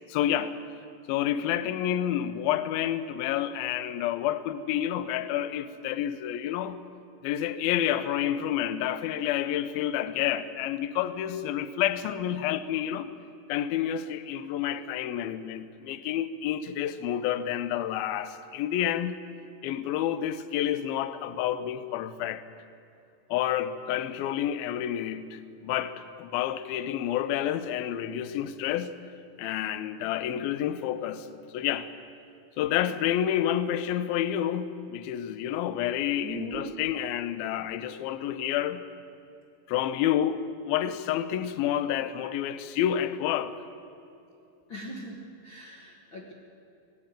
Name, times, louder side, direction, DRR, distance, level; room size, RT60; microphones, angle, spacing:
voice 1, 0.1-0.6 1.1-6.8 7.2-13.1 13.5-19.2 19.6-22.5 23.3-29.0 29.4-31.3 31.5-31.9 32.6-38.8 39.7-43.6, left 11 dB, 75° left, 2.3 m, -29 dB
voice 2, 36.2-36.7 44.7-46.3, left 1 dB, 45° left, 1.6 m, -39 dB
20.0 x 15.5 x 8.9 m
omnidirectional pair, 5.0 m